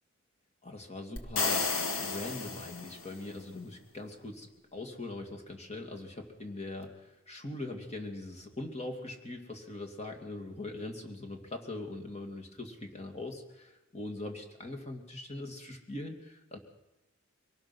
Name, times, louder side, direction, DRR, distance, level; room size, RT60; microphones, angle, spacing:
voice 1, 0.6-16.6, left 2 dB, 30° left, 4 dB, 2.6 m, -41 dB
sound 1, 1.2-3.2, left 4 dB, 70° left, 2.0 m, -32 dB
23.5 x 18.5 x 6.2 m, 0.99 s
head